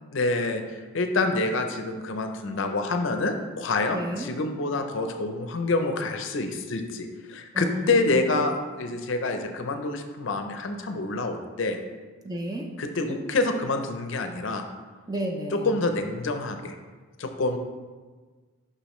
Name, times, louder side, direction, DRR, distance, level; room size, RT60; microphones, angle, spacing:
voice 1, 0.1-11.8 12.8-14.6 15.7-16.7 17.2-17.6, left 3 dB, 65° left, 6 dB, 0.6 m, -27 dB
voice 2, 3.9-4.3 7.5-8.4 12.2-12.7 15.1-15.8, equal, 20° right, 1 dB, 0.6 m, -32 dB
6.8 x 5.6 x 3.1 m, 1.4 s
head